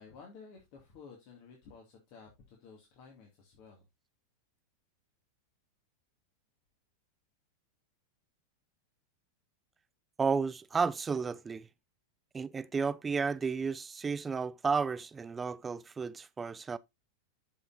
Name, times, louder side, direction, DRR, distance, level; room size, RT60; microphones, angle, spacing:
voice 1, 0.0-3.9, left 5 dB, 45° left, 2.4 m, -53 dB
voice 2, 10.2-11.7 12.3-16.8, right 5 dB, 15° right, 0.5 m, -32 dB
13.0 x 5.7 x 2.7 m
figure-of-eight pair, 90°, 0 cm